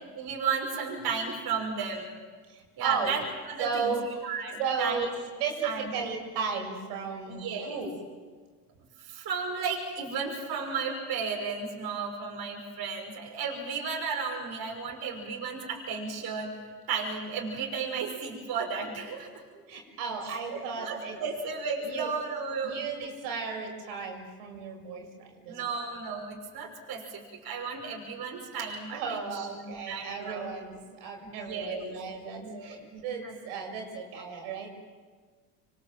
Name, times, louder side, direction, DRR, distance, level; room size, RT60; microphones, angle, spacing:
voice 1, 0.1-2.1 2.8-3.9 4.2-5.1 5.6-5.9 7.3-7.8 9.0-16.5 16.9-19.3 20.2-22.8 25.5-30.5 31.2-32.0 32.4-32.8 33.2-33.4, right 5 dB, 50° right, 1 dB, 6.0 m, -34 dB
voice 2, 2.5-3.2 3.6-4.0 4.6-5.1 5.4-7.9 19.5-21.2 21.8-22.1 22.6-25.8 28.9-34.7, right 5 dB, 70° right, 2 dB, 7.0 m, -34 dB
27.0 x 24.0 x 7.8 m, 1.5 s
hypercardioid pair, 75°, 47 cm